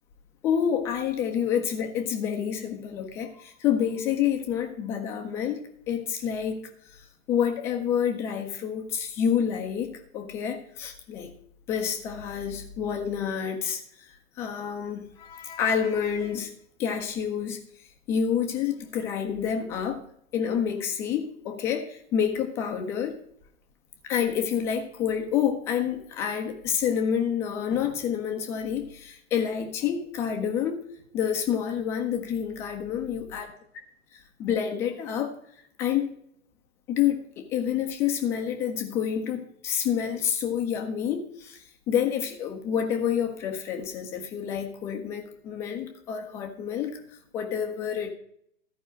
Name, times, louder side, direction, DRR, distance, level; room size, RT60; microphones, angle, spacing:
voice 1, 0.4-5.6 5.9-11.3 11.7-14.1 14.4-16.5 16.8-17.6 18.1-20.0 20.3-23.1 24.0-30.8 31.1-33.5 34.4-35.3 35.8-36.1 36.9-47.0 47.3-48.1, left 8 dB, 5° left, 4 dB, 0.3 m, -28 dB
13.5 x 4.9 x 6.1 m, 0.69 s
hypercardioid pair, 115°, 40 cm